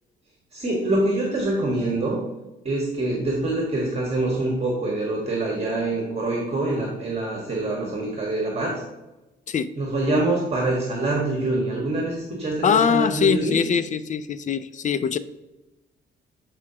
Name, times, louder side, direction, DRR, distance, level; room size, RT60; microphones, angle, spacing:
voice 1, 0.5-2.2 2.6-8.8 9.8-13.6, right 2 dB, 30° right, -2 dB, 1.6 m, -25 dB
voice 2, 12.6-15.2, left 7 dB, 40° left, 14 dB, 0.4 m, -22 dB
8.4 x 4.8 x 2.9 m, 1.0 s
cardioid pair, 90°, 20 cm